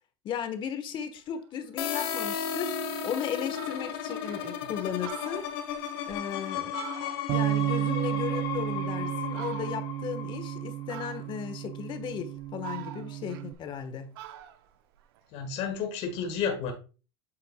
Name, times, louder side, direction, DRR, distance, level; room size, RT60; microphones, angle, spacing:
voice 1, 0.2-2.8 3.0-5.5 6.1-6.8 7.3-14.2, left 8 dB, 35° left, 1.2 m, -36 dB
Fowl, 1.3-1.4 1.8-2.4 2.9-3.0 3.2-3.3 3.5-4.4 4.9-7.5 7.8-8.9 9.3-10.0 10.9-11.5 12.1-13.8 14.1-15.7, right 13 dB, 70° right, 0.8 m, -45 dB
sound 1, 1.8-11.4, left 8 dB, 70° left, 1.6 m, -35 dB
Bass guitar, 7.3-13.5, right 15 dB, 45° right, 0.4 m, -32 dB
voice 2, 15.3-16.7, left 6 dB, 55° left, 1.7 m, -31 dB
8.4 x 5.7 x 2.2 m
supercardioid pair, 115°, 13 cm